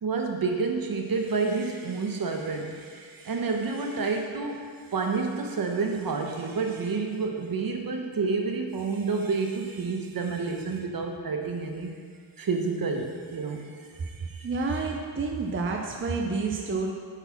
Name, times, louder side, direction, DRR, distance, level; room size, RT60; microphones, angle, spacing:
voice 1, 0.0-4.6 4.9-11.9 12.4-13.7 14.0-14.5, right 4 dB, 50° right, 3 dB, 1.0 m, -29 dB
voice 2, 14.4-16.9, right 4 dB, 25° right, 1 dB, 0.6 m, -29 dB
8.2 x 4.1 x 5.8 m, 2.1 s
wide cardioid pair, 105°, 46 cm